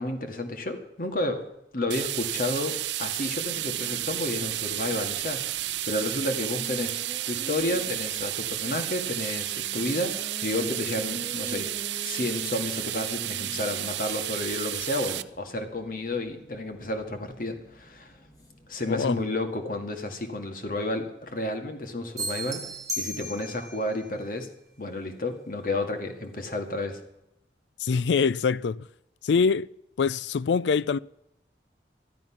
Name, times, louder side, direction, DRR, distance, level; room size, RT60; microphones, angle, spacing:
voice 1, 0.0-1.4 1.7-7.0 7.3-11.7 12.0-18.1 18.7-22.7 23.0-24.5 24.8-27.0, left 2 dB, 50° left, 1.9 m, -31 dB
sound 1, 1.9-15.2, right 14 dB, 85° right, 0.6 m, -32 dB
Race car auto racing, 3.1-19.3, equal, 25° left, 2.1 m, -46 dB
sound 2, 22.2-23.8, equal, 20° right, 1.5 m, -34 dB
voice 2, 27.8-28.9 29.2-29.7 30.0-31.0, left 5 dB, 85° left, 0.4 m, -24 dB
14.0 x 12.0 x 5.9 m
head